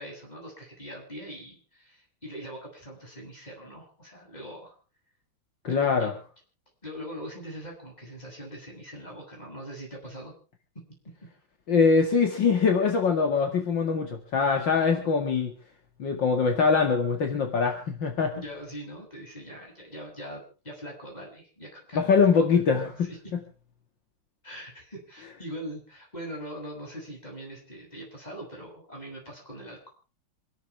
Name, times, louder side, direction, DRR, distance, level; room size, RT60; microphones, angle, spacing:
voice 1, 0.0-4.7 5.6-6.2 6.8-10.3 18.3-22.4 23.0-23.2 24.4-29.9, equal, 20° left, 0 dB, 7.9 m, -42 dB
voice 2, 5.6-6.1 11.7-15.5 16.0-18.3 21.9-23.1, left 5 dB, 65° left, 4 dB, 2.7 m, -23 dB
27.0 x 12.5 x 3.5 m, 0.37 s
omnidirectional pair, 2.2 m